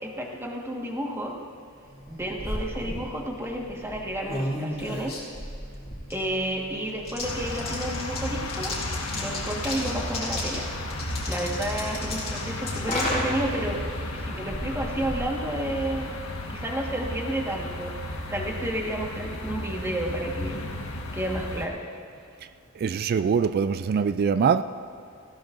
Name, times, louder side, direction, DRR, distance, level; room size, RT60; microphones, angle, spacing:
voice 1, 0.0-1.3 2.1-5.2 6.1-8.8 9.1-10.7 11.3-13.8 14.1-16.1 16.5-20.7 21.1-21.8, right 1 dB, 10° right, -1 dB, 1.5 m, -31 dB
sound 1, 2.0-16.0, left 1 dB, 30° left, 3.3 m, -35 dB
sound 2, 7.2-21.7, left 1 dB, 70° left, 1.4 m, -34 dB
voice 2, 22.8-24.6, right 6 dB, 45° right, 12 dB, 0.3 m, -23 dB
19.0 x 15.5 x 2.6 m, 2.5 s
head